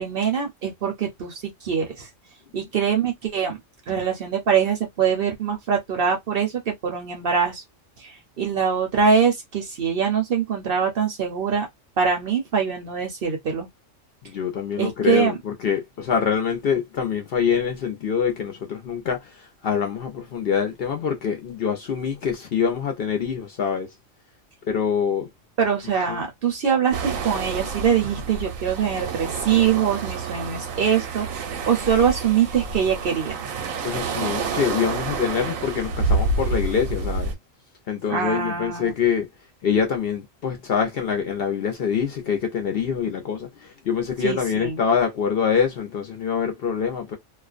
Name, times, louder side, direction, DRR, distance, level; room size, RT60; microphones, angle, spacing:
voice 1, 0.0-2.1 2.5-3.6 3.9-7.6 8.0-11.7 12.0-13.7 14.8-15.4 25.6-31.3 31.7-33.4 38.1-38.9 44.2-44.8, right 7 dB, 55° right, 0.8 m, -23 dB
voice 2, 14.2-23.9 24.7-25.3 26.1-26.2 33.8-37.3 37.9-39.3 39.6-47.2, left 7 dB, 60° left, 0.7 m, -25 dB
sound 1, 26.9-37.3, right 4 dB, 85° right, 1.0 m, -28 dB
2.4 x 2.1 x 2.4 m
omnidirectional pair, 1.3 m